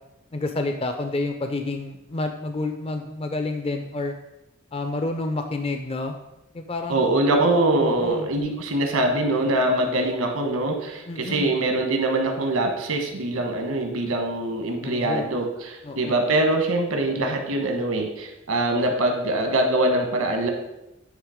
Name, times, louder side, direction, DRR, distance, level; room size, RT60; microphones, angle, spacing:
voice 1, 0.3-4.1 4.7-6.1 6.5-7.1 7.8-8.3 11.1-11.5 14.8-15.3 15.8-16.2, left 2 dB, 30° left, 6 dB, 0.4 m, -29 dB
voice 2, 6.9-20.5, right 2 dB, 80° right, 3 dB, 1.2 m, -23 dB
9.3 x 3.3 x 5.0 m, 0.92 s
head